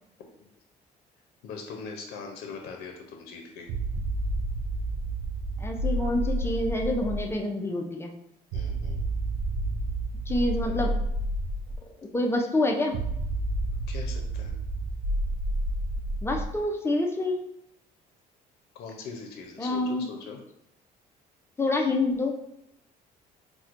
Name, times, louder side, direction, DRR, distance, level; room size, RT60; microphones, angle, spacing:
voice 1, 1.4-3.7 8.5-9.0 13.9-14.5 18.7-20.4, left 5 dB, 80° left, 2 dB, 0.5 m, -41 dB
sound 1, 3.7-7.4 8.5-11.8 12.9-16.6, right 1 dB, 80° right, 0.4 m, -30 dB
voice 2, 5.6-8.1 10.3-10.9 12.1-13.0 16.2-17.4 19.6-20.1 21.6-22.3, left 2 dB, 15° left, 1 dB, 0.4 m, -27 dB
4.3 x 2.1 x 2.4 m, 0.80 s
cardioid pair, 110°, 17 cm